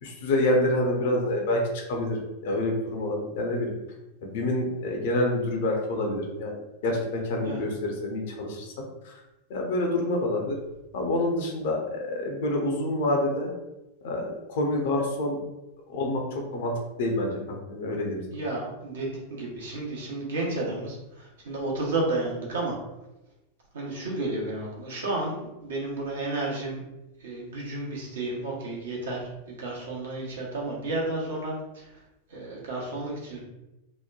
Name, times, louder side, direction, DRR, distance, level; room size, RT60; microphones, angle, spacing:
voice 1, 0.0-3.7 4.2-8.7 9.0-9.1 9.5-10.6 10.9-13.5 14.0-15.4 15.9-18.2, left 1 dB, 55° left, 1 dB, 0.6 m, -27 dB
voice 2, 18.3-22.7 23.7-26.8 27.2-31.9 32.3-33.4, right 2 dB, 65° right, -3 dB, 0.8 m, -32 dB
2.9 x 2.1 x 2.3 m, 0.97 s
figure-of-eight pair, 90°, 0 cm